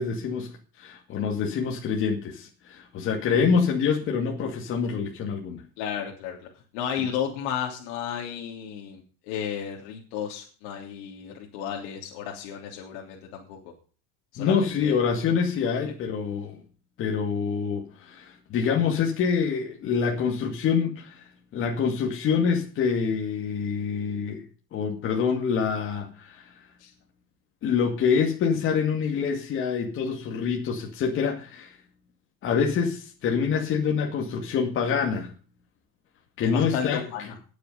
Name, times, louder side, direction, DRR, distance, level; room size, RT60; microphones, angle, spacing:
voice 1, 0.0-5.6 14.4-16.6 17.0-24.4 24.7-26.6 27.6-31.8 32.4-35.3 36.4-37.3, left 6 dB, 35° left, 2.3 m, -26 dB
voice 2, 5.8-6.5 6.7-13.6 14.3-14.9 26.8-26.9 36.4-37.3, left 8 dB, 75° left, 3.4 m, -33 dB
20.0 x 6.8 x 5.5 m
cardioid pair, 155°, 35 cm